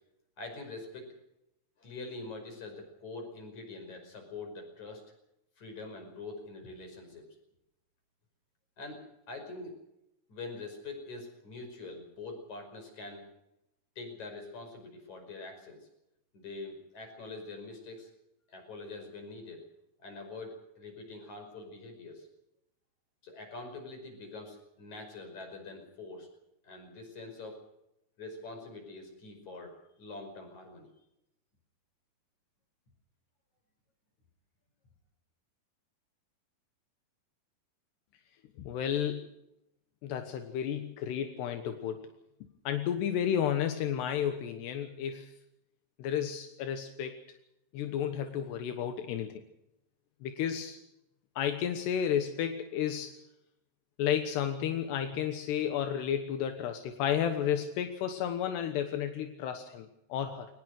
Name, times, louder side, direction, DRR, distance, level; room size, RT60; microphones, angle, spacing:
voice 1, 0.4-1.1 1.8-5.0 5.6-7.2 8.8-9.0 9.3-9.8 10.3-13.2 14.0-15.9 16.3-18.1 18.5-19.6 20.0-22.3 23.2-26.3 26.6-27.6 28.2-30.9, left 3 dB, 45° left, 5 dB, 6.6 m, -44 dB
voice 2, 38.6-39.3 40.0-42.0 42.7-45.3 46.0-47.2 47.7-49.3 50.2-50.8 51.4-53.1 54.0-60.5, left 9 dB, 85° left, 7 dB, 3.4 m, -32 dB
22.0 x 20.0 x 6.5 m, 0.84 s
omnidirectional pair, 4.7 m